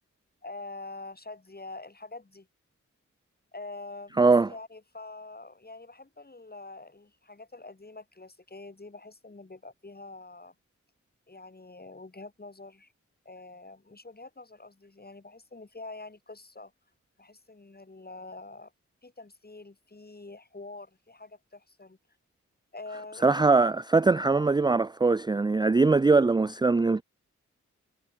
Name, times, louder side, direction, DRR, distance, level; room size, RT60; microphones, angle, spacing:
voice 1, 0.4-2.5 3.5-10.5 11.3-12.9 13.2-16.7 17.2-18.7 19.0-22.0 22.7-23.4, left 3 dB, 30° left, 6.3 m, -45 dB
voice 2, 4.2-4.5 23.2-27.0, right 3 dB, 15° right, 0.4 m, -22 dB
cardioid pair, 55°, 30 cm